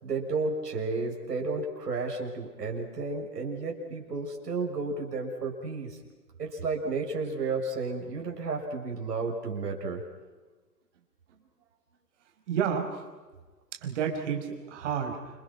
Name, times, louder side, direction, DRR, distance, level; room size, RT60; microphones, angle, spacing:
voice 1, 0.0-6.0 6.4-10.0, right 3 dB, 75° right, 2 dB, 6.4 m, -32 dB
voice 2, 12.5-13.0 13.7-15.2, right 7 dB, 45° right, 3 dB, 5.4 m, -30 dB
28.5 x 28.0 x 6.0 m, 1.3 s
hypercardioid pair, 140°, 48 cm